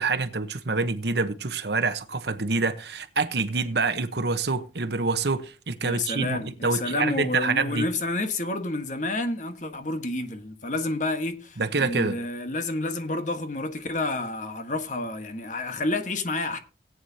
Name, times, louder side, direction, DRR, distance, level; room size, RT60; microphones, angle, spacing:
voice 1, 0.0-7.9 11.6-12.2, right 4 dB, 65° right, 1.0 m, -26 dB
voice 2, 5.8-16.6, left 2 dB, 45° left, 1.4 m, -29 dB
17.5 x 9.4 x 2.9 m
head